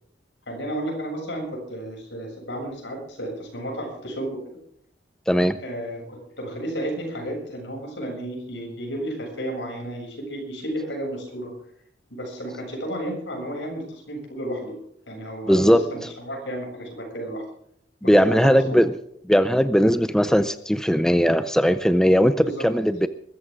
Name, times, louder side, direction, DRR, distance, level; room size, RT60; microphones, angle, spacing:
voice 1, 0.5-4.4 5.6-11.5 12.1-14.7 15.1-17.4 18.0-18.8 22.4-22.6, right 1 dB, 80° left, 1 dB, 7.4 m, -32 dB
voice 2, 5.3-5.6 15.5-15.8 18.0-18.9 19.3-23.1, equal, 5° left, 12 dB, 0.5 m, -18 dB
22.0 x 14.0 x 3.7 m, 0.68 s
head